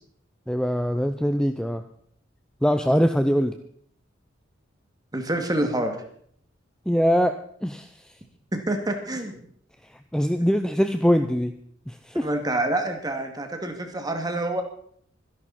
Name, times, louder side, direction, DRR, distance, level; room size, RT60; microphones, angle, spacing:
voice 1, 0.5-1.8 2.6-3.5 6.9-8.1 10.1-11.5 11.9-12.3, equal, 5° left, 8 dB, 0.7 m, -23 dB
voice 2, 5.1-5.9 8.5-9.4 12.2-14.6, right 1 dB, 20° right, 4 dB, 2.4 m, -27 dB
25.0 x 11.0 x 4.3 m, 0.62 s
head